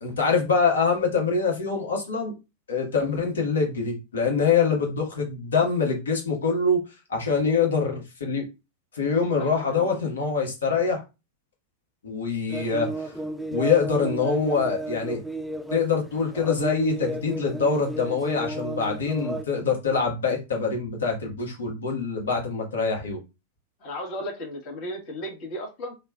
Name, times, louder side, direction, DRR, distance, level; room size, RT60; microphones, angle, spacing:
voice 1, 0.0-2.3 2.7-8.4 8.9-11.0 12.0-13.1 13.5-15.2 15.7-23.2, left 5 dB, 75° left, 1.1 m, -24 dB
voice 2, 9.4-10.0 23.8-25.9, equal, 45° left, 1.2 m, -35 dB
sound 1, 12.5-19.4, right 1 dB, ahead, 0.3 m, -33 dB
3.1 x 2.3 x 2.3 m
figure-of-eight pair, 95°, 0 cm